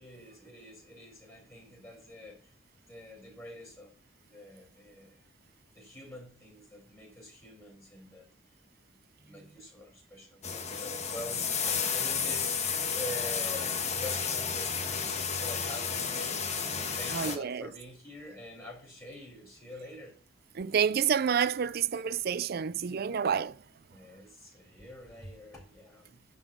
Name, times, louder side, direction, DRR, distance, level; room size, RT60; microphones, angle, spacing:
voice 1, 0.0-2.5 2.9-3.9 4.2-5.2 5.7-8.3 8.9-12.7 12.9-16.4 16.9-20.2 23.9-26.2, left 1 dB, 15° left, 4.0 m, -46 dB
sound 1, 10.4-17.4, left 6 dB, 35° left, 1.3 m, -32 dB
voice 2, 17.1-17.7 20.5-23.6, right 7 dB, 55° right, 0.4 m, -29 dB
10.5 x 4.1 x 6.4 m
head